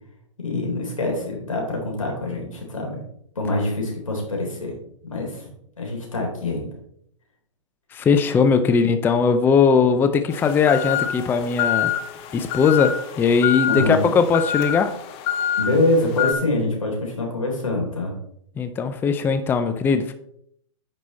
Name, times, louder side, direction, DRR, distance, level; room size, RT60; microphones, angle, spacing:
voice 1, 0.4-3.0 3.4-4.7 5.0-5.5 5.8-6.7 13.7-14.1 15.6-18.2, left 2 dB, 85° left, 0 dB, 3.6 m, -25 dB
voice 2, 7.9-11.9 12.3-15.0 18.6-20.1, left 5 dB, 10° left, 9 dB, 0.5 m, -19 dB
sound 1, 10.3-16.3, left 10 dB, 35° left, 1.0 m, -26 dB
9.2 x 5.4 x 4.2 m, 0.71 s
figure-of-eight pair, 115°, 17 cm